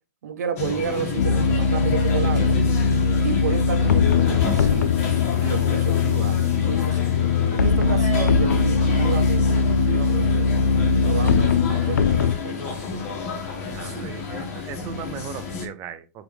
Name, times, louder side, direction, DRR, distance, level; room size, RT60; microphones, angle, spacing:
voice 1, 0.2-2.6 3.2-7.0 7.5-10.5 11.0-12.9 13.8-14.1, right 7 dB, 70° right, 1.0 m, -31 dB
sound 1, 0.6-15.7, left 4 dB, 50° left, 1.3 m, -30 dB
sound 2, 1.2-12.3, left 5 dB, 85° left, 0.4 m, -20 dB
voice 2, 13.7-16.2, right 9 dB, 30° right, 0.5 m, -38 dB
4.7 x 2.5 x 3.5 m
hypercardioid pair, 130°, 9 cm